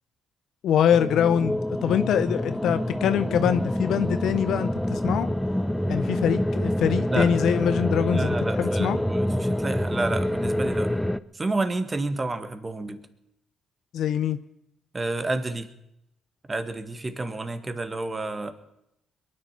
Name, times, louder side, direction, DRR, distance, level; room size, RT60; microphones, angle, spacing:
voice 1, 0.6-5.3 5.9-9.0 13.9-14.4, left 9 dB, 75° left, 11 dB, 0.6 m, -24 dB
sound 1, 0.9-11.2, left 1 dB, 5° left, 0.6 m, -26 dB
voice 2, 8.1-10.9 11.3-13.0 14.9-15.7 16.5-18.5, right 2 dB, 30° right, 10 dB, 1.7 m, -30 dB
22.0 x 9.9 x 5.8 m, 0.81 s
supercardioid pair, 60°, 0 cm